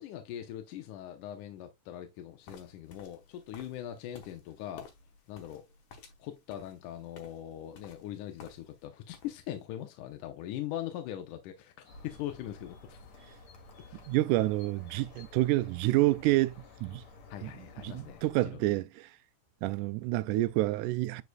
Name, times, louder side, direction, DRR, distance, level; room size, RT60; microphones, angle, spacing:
voice 1, 0.0-4.9 5.3-5.7 6.2-13.0 13.8-14.0 17.3-18.6, left 12 dB, 85° left, 2.4 m, -41 dB
sound 1, 2.4-8.8 9.1-9.6, left 5 dB, 65° left, 2.7 m, -54 dB
sound 2, 11.8-18.4, left 3 dB, 50° left, 2.6 m, -53 dB
voice 2, 14.1-16.5 16.8-17.0 17.4-17.5 17.8-19.1 19.6-21.2, right 17 dB, 85° right, 2.0 m, -28 dB
9.5 x 4.9 x 2.3 m
omnidirectional pair, 3.6 m